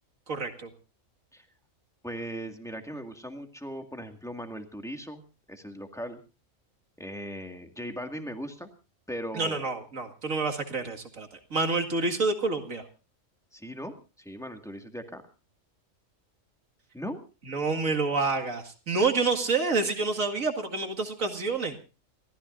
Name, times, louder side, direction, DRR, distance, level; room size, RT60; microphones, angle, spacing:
voice 1, 0.3-0.7 9.3-12.8 17.5-21.8, right 3 dB, 80° right, 5 dB, 2.5 m, -28 dB
voice 2, 2.0-5.2 5.5-6.2 7.0-8.7 9.1-9.6 13.5-15.2 16.9-17.2, equal, ahead, 4 dB, 2.0 m, -38 dB
30.0 x 14.5 x 2.6 m, 0.33 s
omnidirectional pair, 1.4 m